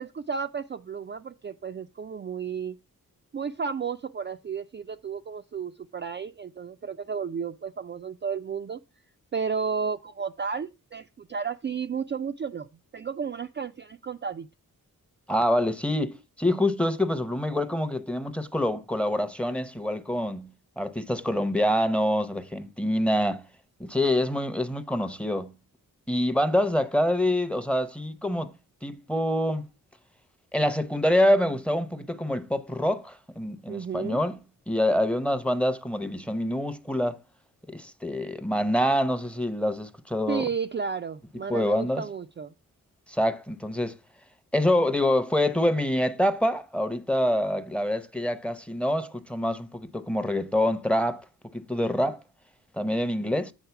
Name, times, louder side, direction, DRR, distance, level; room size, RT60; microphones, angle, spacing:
voice 1, 0.0-2.8 3.3-8.8 9.3-12.7 12.9-14.5 33.7-34.2 40.3-42.5, right 6 dB, 35° right, 0.4 m, -32 dB
voice 2, 15.3-20.5 20.8-23.4 23.8-25.5 26.1-28.5 28.8-29.6 30.5-34.4 34.7-37.2 37.7-40.5 41.5-42.0 43.1-44.0 44.5-51.2 51.5-52.2 52.7-53.5, left 1 dB, 5° left, 0.7 m, -26 dB
8.0 x 3.9 x 5.7 m
wide cardioid pair, 90°, 34 cm